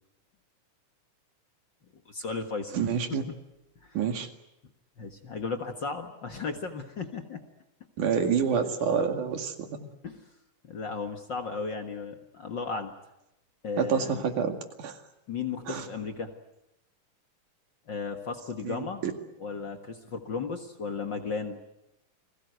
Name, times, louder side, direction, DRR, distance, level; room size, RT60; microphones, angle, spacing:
voice 1, 2.0-2.8 3.1-3.4 3.8-4.0 5.0-7.4 10.0-10.3 10.6-12.9 13.6-14.3 15.3-16.3 17.9-19.0 19.4-21.6, left 4 dB, 45° left, 5 dB, 1.8 m, -35 dB
voice 2, 2.7-3.2 4.0-4.3 8.0-9.9 13.8-14.9 15.7-15.9 18.6-19.1, right 7 dB, 75° right, 5 dB, 3.6 m, -28 dB
30.0 x 21.5 x 8.0 m, 0.89 s
omnidirectional pair, 3.6 m